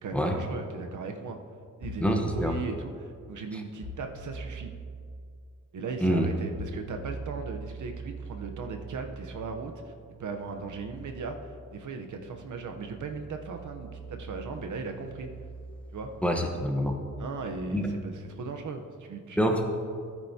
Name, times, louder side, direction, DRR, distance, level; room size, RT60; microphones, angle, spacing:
voice 1, 0.0-1.4 1.8-4.7 5.7-9.9 10.2-15.3 15.9-16.1 17.2-19.6, right 4 dB, 65° right, 4 dB, 0.9 m, -37 dB
sound 1, 1.8-2.3 3.8-4.8 6.5-17.9, right 2 dB, 25° right, 2.3 m, -44 dB
voice 2, 2.0-2.5 6.0-6.3 16.2-17.0 17.7-17.9 19.4-19.6, equal, 5° left, 2 dB, 1.0 m, -26 dB
14.0 x 9.1 x 2.8 m, 2.2 s
cardioid pair, 100°, 33 cm